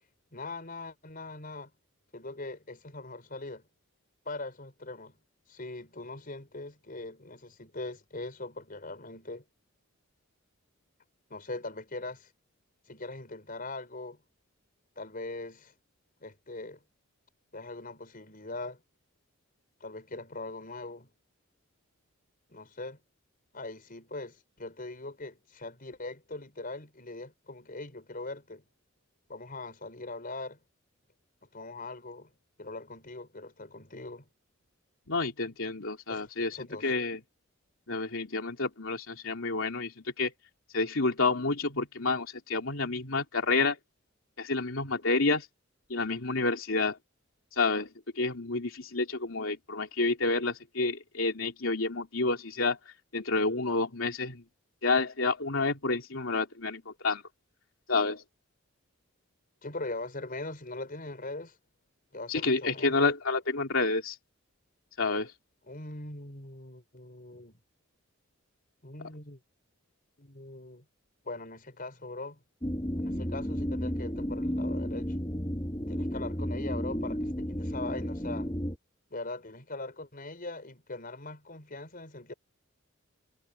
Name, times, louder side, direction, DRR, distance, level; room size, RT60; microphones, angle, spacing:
voice 1, 0.3-1.7 2.1-3.7 4.3-5.2 5.5-9.4 11.3-12.3 12.9-14.2 15.0-15.7 16.2-16.8 17.5-18.8 19.8-21.1 22.5-23.0 23.5-28.6 29.3-30.6 31.5-32.3 32.6-34.3 36.1-36.9 59.6-61.6 62.1-63.1 65.7-67.6 68.8-69.4 70.2-70.9 71.2-72.4 73.0-75.2 75.9-78.5 79.1-82.3, left 2 dB, 45° left, 5.1 m, -41 dB
voice 2, 35.1-37.2 37.9-40.3 40.7-43.8 44.4-45.5 45.9-47.0 47.5-47.9 48.1-54.4 54.8-57.2 57.9-58.2 62.3-64.2 65.0-65.3, left 3 dB, 70° left, 3.3 m, -29 dB
sound 1, 72.6-78.8, equal, 20° left, 2.4 m, -32 dB
head